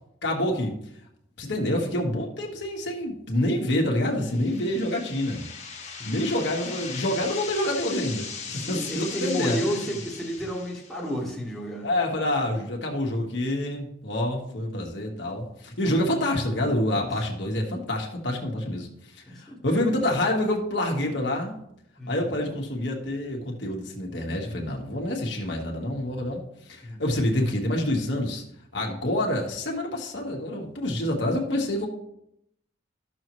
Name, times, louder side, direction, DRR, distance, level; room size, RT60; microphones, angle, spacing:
voice 1, 0.2-0.7 1.4-5.5 6.0-8.3 8.7-9.6 11.8-18.9 19.1-21.5 22.1-28.4 28.7-31.9, left 1 dB, 70° left, 0 dB, 1.5 m, -27 dB
sound 1, 4.2-11.1, left 5 dB, 35° left, 1.5 m, -38 dB
voice 2, 5.8-6.3 8.5-11.9 17.0-17.1 19.3-20.1 22.0-22.5 26.8-27.0, equal, ahead, -4 dB, 1.5 m, -32 dB
13.0 x 6.4 x 3.1 m, 0.77 s
head